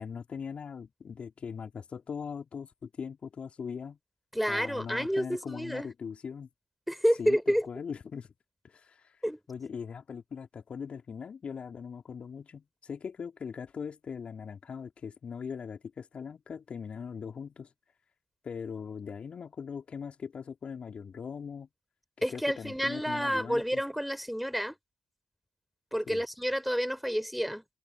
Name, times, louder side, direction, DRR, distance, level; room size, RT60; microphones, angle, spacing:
voice 1, 0.0-4.0 4.5-6.5 7.2-8.3 8.6-9.2 9.5-17.7 18.4-21.7 22.2-23.8 26.1-26.2, left 6 dB, 50° left, 3.5 m, -40 dB
voice 2, 4.3-5.9 6.9-7.6 9.2-9.4 22.2-24.7 25.9-27.6, equal, ahead, 4.0 m, -29 dB
hypercardioid pair, 40°, 3 cm